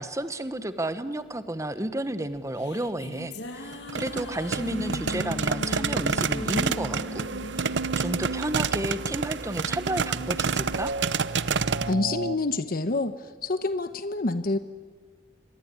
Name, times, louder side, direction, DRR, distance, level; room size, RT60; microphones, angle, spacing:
voice 1, 0.0-7.3 7.5-10.9, right 1 dB, 15° right, 11 dB, 1.0 m, -32 dB
sound 1, 2.3-8.9, left 2 dB, 75° left, 2.4 m, -38 dB
sound 2, 3.7-11.9, right 5 dB, 90° right, 0.8 m, -29 dB
sound 3, 6.9-12.4, right 3 dB, 70° right, 1.1 m, -35 dB
voice 2, 11.8-13.1 13.4-14.6, left 2 dB, 55° left, 11 dB, 1.0 m, -27 dB
26.5 x 22.0 x 9.6 m, 1.5 s
head